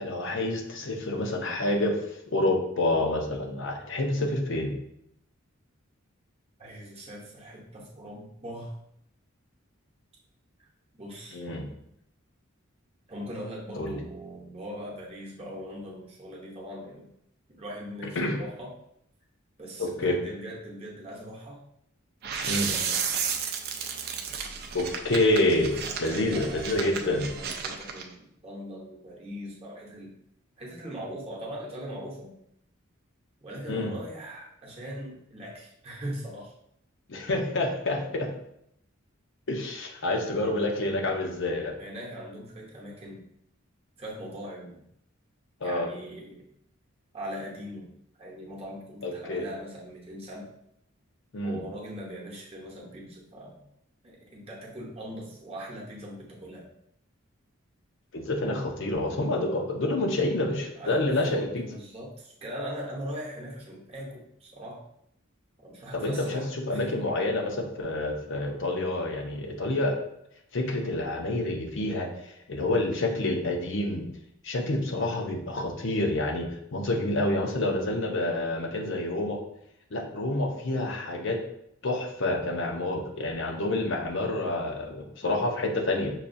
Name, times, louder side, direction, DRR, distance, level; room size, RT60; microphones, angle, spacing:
voice 1, 0.0-2.0 2.3-4.7 11.3-11.7 13.8-14.0 18.2-18.4 19.8-20.2 22.5-22.7 24.7-25.7 26.0-27.3 33.7-33.9 37.1-38.3 39.5-41.8 45.6-45.9 49.0-49.4 51.3-51.6 58.1-61.6 65.9-70.0 70.5-72.1 72.5-74.1 74.4-79.4 79.9-81.4 81.8-86.1, left 2 dB, 60° left, 3 dB, 0.7 m, -28 dB
voice 2, 6.6-8.7 11.0-11.4 13.1-17.1 17.6-18.7 19.6-21.6 22.5-23.0 25.5-30.1 30.6-32.3 33.4-36.5 41.8-43.2 44.0-44.8 45.6-46.4 47.1-47.9 48.2-50.5 51.4-53.6 54.0-56.7 60.7-64.8 65.6-67.0, equal, 30° right, -3 dB, 0.8 m, -40 dB
sound 1, 22.2-28.0, right 6 dB, 50° right, 0.4 m, -33 dB
5.7 x 2.3 x 2.6 m, 0.75 s
head